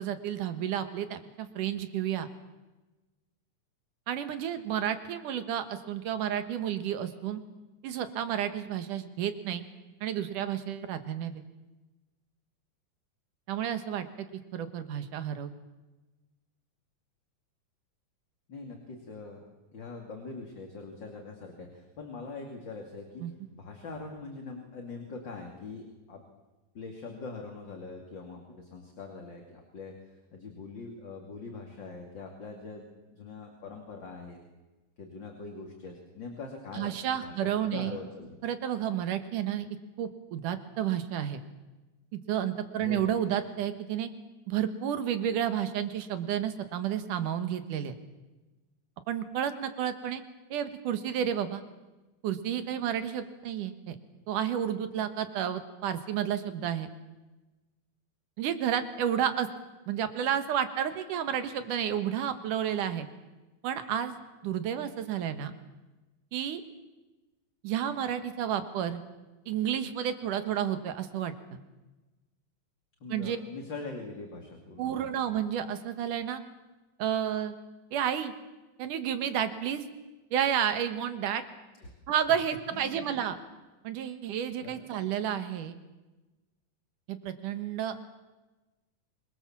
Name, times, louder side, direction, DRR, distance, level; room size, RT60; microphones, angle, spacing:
voice 1, 0.0-2.3 4.1-7.4 7.8-9.6 10.0-11.4 13.5-14.3 14.5-15.5 23.2-23.3 36.7-38.0 38.4-39.7 40.0-41.4 42.1-44.1 44.5-48.0 49.1-50.2 50.5-51.6 52.2-54.0 54.3-56.9 58.4-59.5 59.9-63.1 63.6-64.1 64.4-65.5 66.3-66.6 67.6-69.0 69.5-71.6 73.1-73.4 74.8-76.4 77.0-77.5 77.9-78.3 78.8-79.8 80.3-81.4 82.1-83.4 83.8-85.7 87.1-87.9, right 9 dB, 80° right, 10 dB, 2.9 m, -31 dB
voice 2, 18.5-19.4 19.7-23.2 23.5-26.2 26.7-29.9 30.3-34.4 35.0-37.3 37.6-38.3 42.8-43.1 73.0-75.1 81.8-81.9 82.7-83.1 84.6-84.8, left 3 dB, 35° left, 2 dB, 3.2 m, -43 dB
26.0 x 22.0 x 7.4 m, 1.1 s
omnidirectional pair, 3.6 m